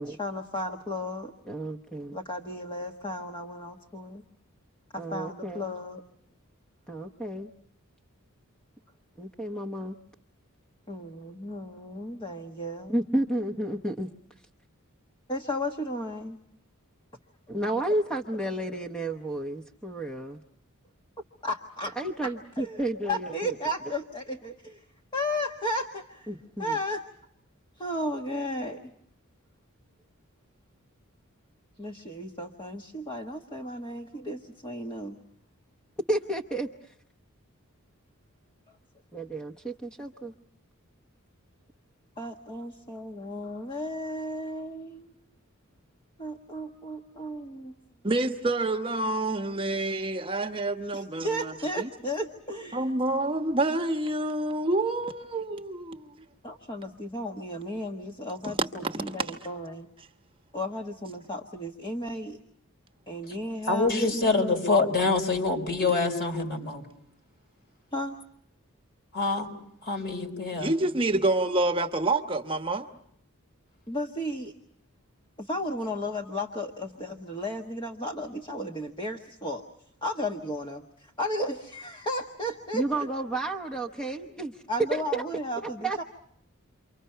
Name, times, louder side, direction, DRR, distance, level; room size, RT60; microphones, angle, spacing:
voice 1, 0.1-1.3 2.1-4.2 4.9-6.0 10.9-13.0 15.3-16.4 21.4-22.0 22.2-24.8 25.1-26.3 26.6-27.0 27.8-28.8 31.8-35.2 42.2-45.1 46.2-47.7 49.6-49.7 50.9-52.9 56.4-59.9 60.5-62.4 63.1-65.1 67.9-68.2 73.9-74.5 75.4-79.6 80.0-83.1 84.7-86.0, left 1 dB, 20° left, 1.2 m, -34 dB
voice 2, 1.5-2.2 5.0-5.7 6.9-7.5 9.2-10.0 12.9-14.1 17.5-20.4 22.0-23.5 26.3-26.8 36.1-36.9 39.1-40.3 82.7-84.6 84.9-85.2 85.8-86.0, right 1 dB, 5° left, 0.9 m, -31 dB
voice 3, 48.0-51.9 52.7-56.1 58.4-59.4 70.6-72.9, right 2 dB, 25° right, 1.1 m, -28 dB
voice 4, 63.7-66.8 69.1-69.5 69.8-70.7, left 3 dB, 45° left, 4.4 m, -25 dB
29.0 x 25.0 x 5.6 m
head